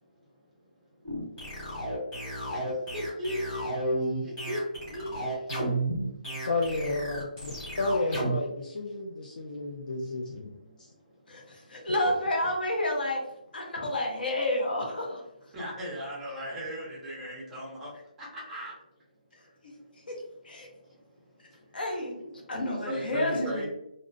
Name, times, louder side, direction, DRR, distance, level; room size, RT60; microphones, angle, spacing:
sound 1, 1.0-8.4, right 1 dB, 15° left, 1.0 m, -32 dB
voice 1, 2.9-4.6 4.9-5.4 15.5-17.9 18.2-18.7 22.1-22.3 22.9-23.7, equal, 5° right, -6 dB, 0.4 m, -36 dB
voice 2, 6.5-10.6 11.9-12.1, left 2 dB, 70° left, 0 dB, 0.4 m, -31 dB
voice 3, 11.3-13.2 13.5-15.2 20.1-20.2 20.4-20.7 21.7-22.2 22.5-23.7, left 1 dB, 85° left, 0 dB, 0.8 m, -30 dB
2.5 x 2.1 x 2.5 m, 0.82 s
hypercardioid pair, 170°, 5 cm